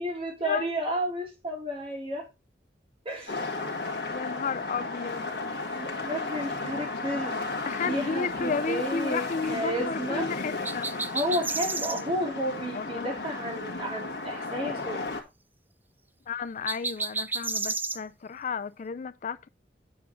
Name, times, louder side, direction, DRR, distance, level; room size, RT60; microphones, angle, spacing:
voice 1, 0.0-2.3 3.0-3.5 5.7-7.4 7.8-10.3 11.1-15.1, equal, 35° right, 3.3 m, -32 dB
sound 1, 3.3-15.2, left 3 dB, 65° left, 1.9 m, -34 dB
voice 2, 4.1-5.3 7.6-10.9 12.7-13.1 16.3-19.5, left 5 dB, 45° left, 0.4 m, -33 dB
sound 2, 10.6-12.0 16.7-18.0, right 3 dB, 10° right, 0.5 m, -31 dB
9.4 x 6.2 x 3.8 m
head